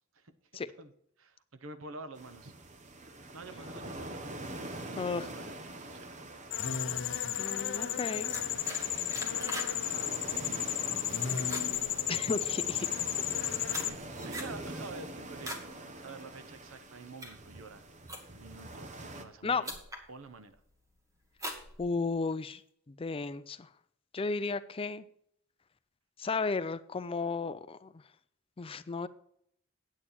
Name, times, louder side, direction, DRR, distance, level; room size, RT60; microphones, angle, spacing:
voice 1, 1.2-2.5 3.3-4.3 4.7-5.6 5.9-6.1 9.1-9.9 10.3-12.4 13.0-17.8 18.3-19.8 20.1-20.6, right 3 dB, 85° right, 11 dB, 0.9 m, -49 dB
sound 1, 2.1-19.2, right 1 dB, 35° right, 0.9 m, -44 dB
voice 2, 5.0-5.3 7.4-8.3 12.1-12.9 19.4-19.6 21.8-22.6 22.9-23.7 24.1-25.0 26.2-27.9 28.6-29.1, left 4 dB, 30° left, 14 dB, 0.4 m, -34 dB
sound 2, 6.5-13.9, left 10 dB, 65° left, 0.7 m, -33 dB
sound 3, 8.3-9.8 10.1-10.4 10.8-11.1 11.4-12.6 13.2-15.7 16.1-16.4 16.9-18.6 19.3-19.4 19.6-20.1 20.5-20.9 21.3-22.3, equal, 15° right, 1.6 m, -42 dB
8.9 x 8.6 x 4.3 m, 0.69 s
head